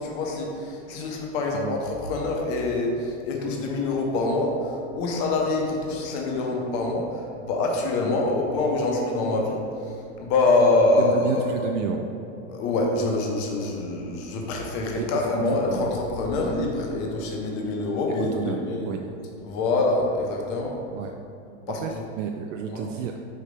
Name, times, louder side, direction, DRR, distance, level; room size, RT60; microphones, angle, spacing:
voice 1, 0.0-11.5 12.5-18.9 19.4-20.7 21.7-22.0 22.7-22.9, left 2 dB, 25° left, 0 dB, 0.6 m, -25 dB
voice 2, 11.0-12.0 14.9-15.9 16.4-16.5 18.1-19.0 20.9-21.1 21.7-21.9 22.2-23.2, right 7 dB, 85° right, 3 dB, 0.5 m, -31 dB
5.0 x 4.3 x 5.0 m, 2.7 s
supercardioid pair, 180°, 36 cm